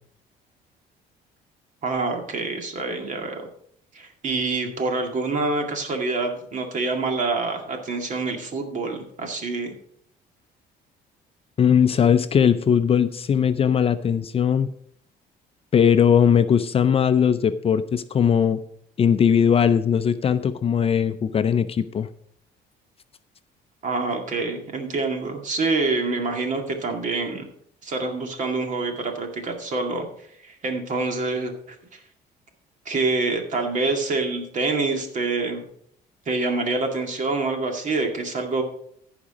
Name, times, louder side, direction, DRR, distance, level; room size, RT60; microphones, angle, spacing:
voice 1, 1.8-3.5 3.9-9.7 23.8-27.5 27.8-32.0 32.9-35.7 36.3-38.6, right 3 dB, 45° right, 4 dB, 2.1 m, -26 dB
voice 2, 11.6-14.7 15.7-18.6 19.0-22.1, left 8 dB, 35° left, 11 dB, 0.5 m, -19 dB
15.0 x 5.1 x 5.0 m, 0.67 s
cardioid pair, 110°, 17 cm